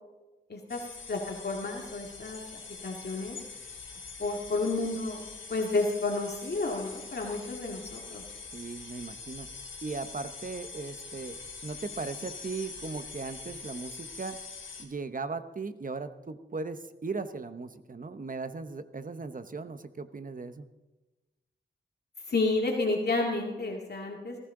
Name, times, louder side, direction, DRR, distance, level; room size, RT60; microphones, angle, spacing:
voice 1, 0.5-0.8 1.1-2.4 2.8-3.4 4.2-5.2 5.5-8.2 22.3-24.4, left 3 dB, 60° left, 0 dB, 2.1 m, -31 dB
sound 1, 0.7-14.8, left 5 dB, 80° left, 2.8 m, -44 dB
voice 2, 8.5-9.5 9.8-14.4 14.8-20.7, right 4 dB, 45° right, 10 dB, 1.0 m, -38 dB
20.0 x 14.5 x 3.9 m, 1.1 s
wide cardioid pair, 95°, 19 cm